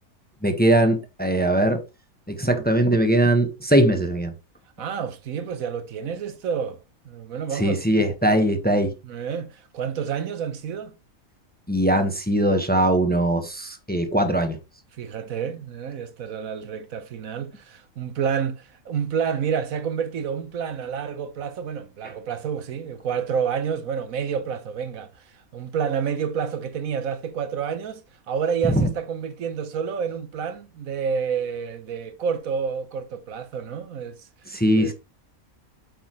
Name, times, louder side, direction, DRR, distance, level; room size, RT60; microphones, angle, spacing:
voice 1, 0.4-1.8 2.3-4.3 7.5-8.9 11.7-14.6 28.7-28.9 34.5-34.9, right 1 dB, 5° left, 1.1 m, -20 dB
voice 2, 4.8-8.1 9.0-10.9 15.0-28.0 28.3-34.9, right 7 dB, 70° right, 1.2 m, -29 dB
8.1 x 6.5 x 3.1 m
omnidirectional pair, 1.5 m